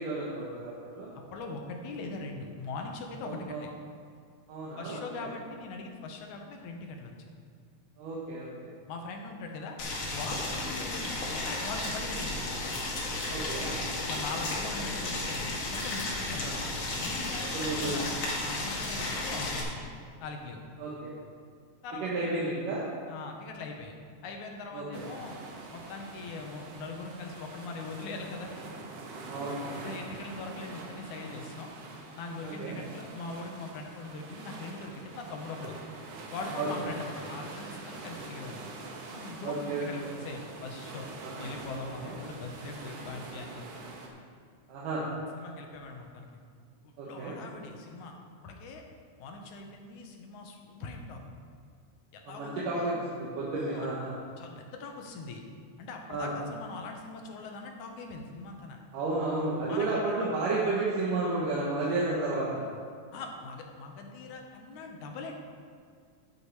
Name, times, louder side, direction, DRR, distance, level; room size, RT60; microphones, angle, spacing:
voice 1, 0.0-1.1 3.2-3.6 4.5-5.3 8.0-8.7 10.8-10.9 13.3-13.7 16.4-16.6 17.5-18.1 18.9-19.1 20.8-21.1 22.0-22.8 24.7-25.0 29.3-29.6 32.4-32.8 36.6-36.7 39.4-40.1 41.2-41.5 41.8-42.2 44.7-45.0 47.0-47.3 52.3-54.2 56.1-56.3 58.9-62.6, right 2 dB, 85° right, -6 dB, 2.9 m, -32 dB
voice 2, 1.3-3.7 4.8-7.3 8.9-9.8 10.1-12.6 14.1-16.5 17.0-18.1 18.4-19.9 20.2-20.6 21.8-22.3 23.1-23.9 24.2-25.4 25.7-28.5 29.8-31.7 32.2-35.8 36.3-38.7 39.1-41.1 41.4-43.6 45.3-46.3 46.8-48.1 48.4-48.8 49.2-51.2 52.1-52.9 53.6-53.9 54.4-55.4 55.8-58.8 59.6-59.9 63.1-65.3, left 3 dB, 75° left, 2 dB, 2.4 m, -41 dB
Boiling, 9.8-19.6, left 2 dB, 55° left, 2.6 m, -33 dB
sound 1, 24.9-44.1, right 3 dB, 60° right, 1.9 m, -44 dB
10.5 x 8.2 x 4.8 m, 2.2 s
omnidirectional pair, 3.6 m